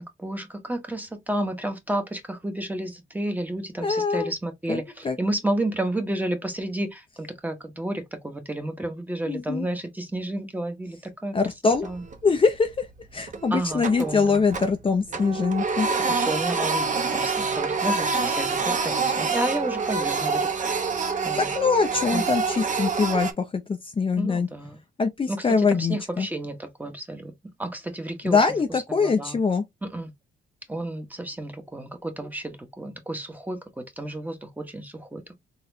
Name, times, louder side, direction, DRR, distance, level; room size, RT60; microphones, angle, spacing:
voice 1, 0.0-11.3 11.8-12.0 13.5-14.4 16.1-20.5 21.2-21.5 22.1-22.2 24.2-24.8 25.3-27.3 27.6-28.4 29.0-29.4 29.8-30.1 30.7-35.4, right 1 dB, 10° right, 1.1 m, -31 dB
voice 2, 3.8-4.3 4.7-5.2 9.3-9.7 11.3-11.9 12.2-12.9 13.1-15.9 21.4-24.5 25.0-26.3 28.2-29.6, left 4 dB, 25° left, 0.6 m, -23 dB
Printer, 11.7-12.3 12.7-12.8 13.3-14.8 15.1-23.3, right 4 dB, 40° right, 1.0 m, -26 dB
4.1 x 3.0 x 2.7 m
cardioid pair, 90°, 20 cm